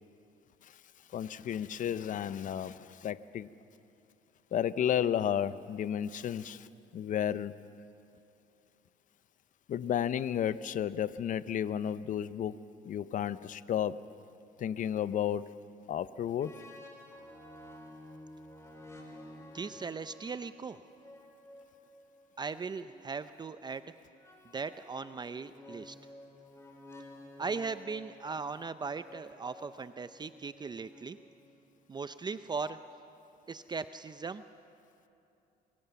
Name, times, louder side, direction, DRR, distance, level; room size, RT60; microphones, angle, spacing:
voice 1, 1.1-3.5 4.5-6.7 6.9-7.5 9.7-12.6 12.8-14.0 14.6-15.5 15.9-16.5, left 9 dB, 50° left, 15 dB, 0.8 m, -32 dB
sound 1, 16.4-23.1 24.2-31.5, left 1 dB, 15° left, 4.3 m, -53 dB
voice 2, 19.5-20.8 22.4-23.8 24.5-26.0 27.4-31.2 31.9-32.8 33.5-34.4, right 4 dB, 25° right, 12 dB, 0.6 m, -38 dB
26.5 x 23.0 x 7.1 m, 2.7 s
cardioid pair, 110°, 17 cm